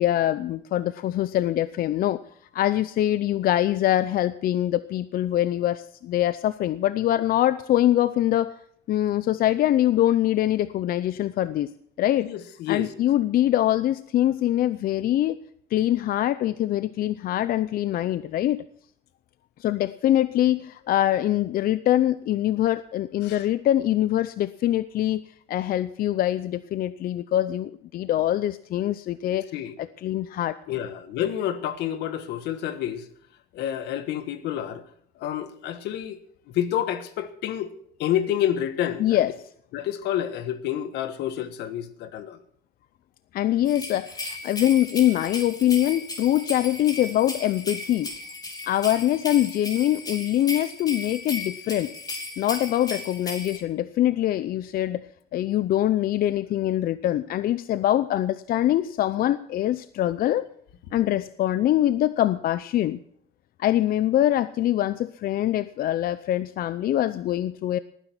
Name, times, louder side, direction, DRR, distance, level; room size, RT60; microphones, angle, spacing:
voice 1, 0.0-2.2 2.5-8.5 8.9-11.7 12.0-12.3 12.7-15.4 15.7-18.6 19.6-25.2 25.5-29.5 29.8-30.6 39.0-39.3 43.3-48.1 48.7-51.9 52.4-55.1 55.3-60.5 60.9-63.0 63.6-67.8, left 13 dB, 60° left, 0.6 m, -23 dB
voice 2, 12.2-12.9 23.2-23.4 29.5-29.7 30.7-33.0 33.5-34.8 35.2-36.2 36.5-37.7 38.0-39.0 39.7-42.4, left 11 dB, 85° left, 1.4 m, -28 dB
sound 1, 43.7-53.6, left 2 dB, 20° left, 3.6 m, -36 dB
18.5 x 10.0 x 6.0 m
cardioid pair, 110°, 17 cm